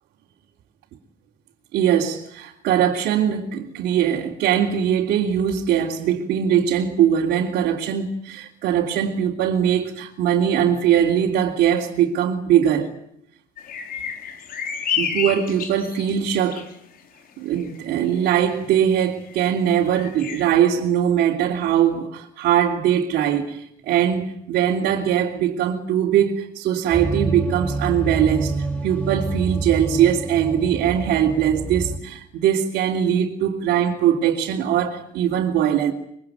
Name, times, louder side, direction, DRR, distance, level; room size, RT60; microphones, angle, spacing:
voice 1, 1.7-12.9 15.0-16.7 17.4-35.9, right 9 dB, 80° right, 3.4 m, -21 dB
sound 1, 13.6-16.7 17.6-17.8 18.2-18.3 19.2-19.3 19.7-20.4, left 7 dB, 60° left, 4.9 m, -30 dB
sound 2, 26.9-32.0, right 3 dB, 10° left, 7.4 m, -27 dB
24.5 x 23.0 x 9.4 m
cardioid pair, 110°, 17 cm